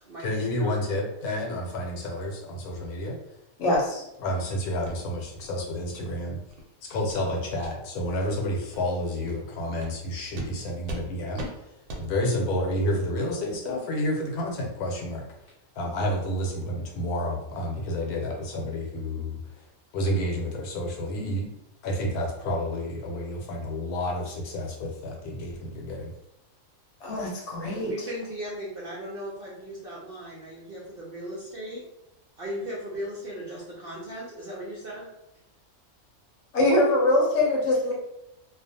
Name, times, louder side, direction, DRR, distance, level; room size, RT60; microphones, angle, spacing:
voice 1, 0.2-3.2 4.2-6.4 6.8-11.6 12.0-15.3 15.7-19.6 19.9-21.5 21.8-26.1, left 1 dB, 90° left, 0 dB, 1.1 m, -30 dB
voice 2, 3.6-4.0 27.0-27.9 36.5-37.9, left 1 dB, 60° left, -2 dB, 0.9 m, -23 dB
sound 1, 3.7-3.8 4.3-4.4 4.8-5.0 5.4-5.5 5.9-6.0 6.4-6.6 7.1-7.2 7.6-7.7 8.2-8.3 8.7-8.9 9.3-9.4 9.8-9.9 10.3-10.5 10.9-11.0 11.4-11.5 11.9-12.0, right 1 dB, 90° right, 1.1 m, -39 dB
voice 3, 27.6-31.8 32.4-35.1, equal, 55° right, -5 dB, 0.6 m, -37 dB
2.4 x 2.4 x 2.6 m, 0.86 s
omnidirectional pair, 1.5 m